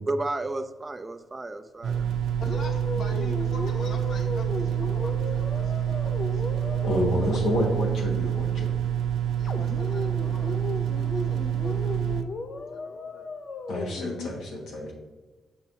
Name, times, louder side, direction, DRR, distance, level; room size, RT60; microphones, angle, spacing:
voice 1, 0.1-2.1, right 2 dB, 20° right, 9 dB, 0.3 m, -32 dB
sound 1, 1.8-12.2, right 10 dB, 85° right, 0.4 m, -27 dB
voice 2, 2.4-6.4 9.4-12.4 12.7-13.3, left 2 dB, 70° left, 2 dB, 1.1 m, -44 dB
sound 2, 2.4-8.0 9.5-14.4, left 3 dB, 45° left, 0.4 m, -36 dB
voice 3, 6.8-8.7 13.7-14.9, left 1 dB, 90° left, -2 dB, 1.6 m, -28 dB
7.2 x 5.5 x 2.7 m, 1.2 s
cardioid pair, 105°, 0 cm